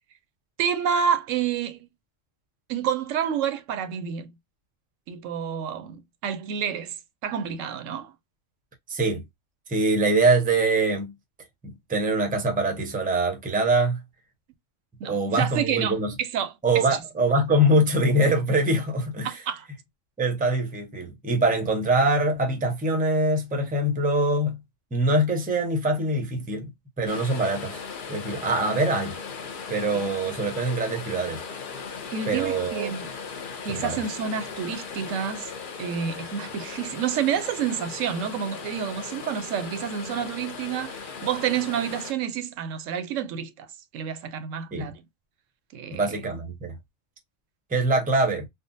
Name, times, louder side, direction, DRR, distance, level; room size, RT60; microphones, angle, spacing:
voice 1, 0.6-1.8 2.7-4.3 5.1-6.9 7.2-8.1 15.0-16.5 16.9-17.0 19.2-19.7 32.1-33.1 33.6-35.5 35.8-43.7 43.9-45.0 45.7-46.1, right 8 dB, 80° right, 0.9 m, -29 dB
voice 2, 8.9-9.2 9.7-11.1 11.6-14.0 15.0-16.1 16.6-19.4 20.2-24.6 24.9-26.7 27.0-27.8 28.1-29.2 29.7-31.4 32.3-32.9 33.7-34.0 44.7-44.9 45.9-46.8 47.7-48.5, right 2 dB, 10° right, 0.5 m, -24 dB
sound 1, 27.1-42.1, left 5 dB, 55° left, 0.6 m, -38 dB
3.6 x 2.0 x 2.5 m
omnidirectional pair, 1.3 m